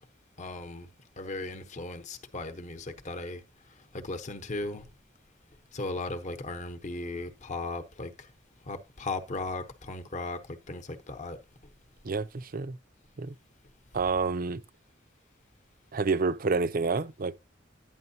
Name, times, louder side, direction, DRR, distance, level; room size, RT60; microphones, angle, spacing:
voice 1, 0.4-0.9 1.2-3.4 3.9-4.9 5.7-8.3 8.7-11.4, left 2 dB, 40° left, 0.9 m, -37 dB
voice 2, 12.0-12.8 13.2-13.3 13.9-14.6 15.9-17.3, right 4 dB, 50° right, 0.6 m, -28 dB
11.5 x 9.2 x 2.8 m
head